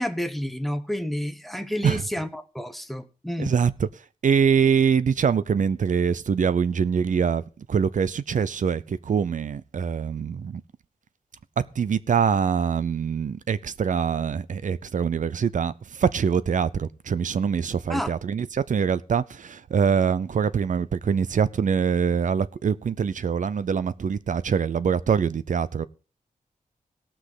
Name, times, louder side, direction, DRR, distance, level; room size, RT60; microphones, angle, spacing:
voice 1, 0.0-3.5 17.9-18.2, equal, ahead, 0.9 m, -30 dB
voice 2, 3.4-3.9 4.2-7.4 7.7-10.6 11.8-25.8, right 6 dB, 60° right, 0.6 m, -24 dB
17.5 x 6.1 x 5.0 m
wide cardioid pair, 115°, 15 cm